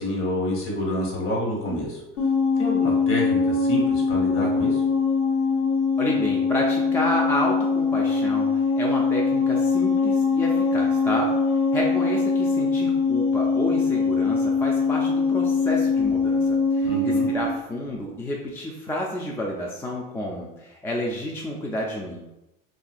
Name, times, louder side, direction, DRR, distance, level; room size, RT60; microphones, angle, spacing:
voice 1, 0.0-2.0 2.5-4.8 16.8-17.3, left 1 dB, 45° left, -2 dB, 1.1 m, -28 dB
sound 1, 2.2-17.5, left 4 dB, 85° left, 1.1 m, -22 dB
voice 2, 6.0-11.3 11.7-22.2, left 1 dB, 10° left, -2 dB, 0.3 m, -30 dB
2.8 x 2.4 x 2.4 m, 0.91 s
hypercardioid pair, 80°, 30 cm